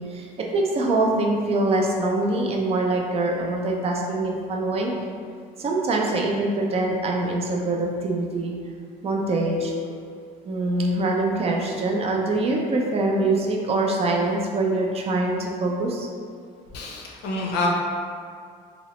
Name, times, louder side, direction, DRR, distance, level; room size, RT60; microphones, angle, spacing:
voice 1, 0.0-4.9 5.6-8.6 9.0-9.7 10.5-16.1, right 2 dB, 35° right, -1 dB, 0.4 m, -24 dB
voice 2, 16.7-17.7, left 3 dB, 85° left, -1 dB, 0.5 m, -27 dB
2.8 x 2.0 x 2.9 m, 2.1 s
cardioid pair, 110°, 17 cm